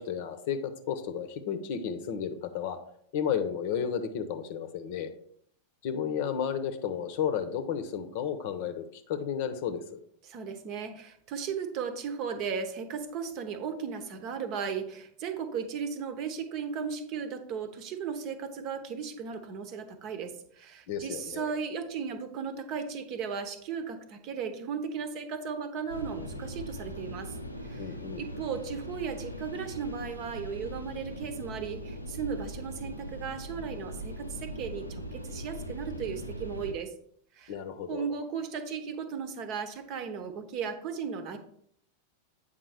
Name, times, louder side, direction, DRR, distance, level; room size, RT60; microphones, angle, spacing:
voice 1, 0.0-2.8 3.1-5.1 5.8-10.0 20.9-21.5 27.8-28.2 37.5-38.1, left 8 dB, 50° left, 9 dB, 0.8 m, -33 dB
voice 2, 10.2-27.4 27.6-36.9 37.3-37.5 37.9-41.4, right 6 dB, 40° right, 9 dB, 0.9 m, -36 dB
sound 1, 25.9-36.7, equal, 90° left, 0.7 m, -40 dB
8.2 x 5.3 x 3.4 m, 0.66 s
figure-of-eight pair, 90°, 0 cm